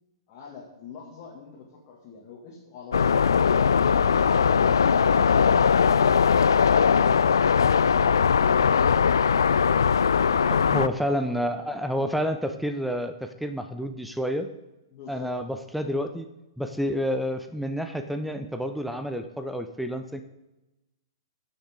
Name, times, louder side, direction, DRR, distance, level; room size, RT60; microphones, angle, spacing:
voice 1, 0.3-3.4 10.2-11.5 11.9-12.1 14.9-15.4, left 5 dB, 35° left, -4 dB, 2.2 m, -45 dB
sound 1, 2.9-10.9, left 6 dB, 65° left, 0.4 m, -20 dB
voice 2, 10.7-14.5 15.1-16.3 16.6-20.2, equal, ahead, 8 dB, 0.5 m, -29 dB
15.5 x 6.6 x 3.8 m, 0.98 s
figure-of-eight pair, 110°, 2 cm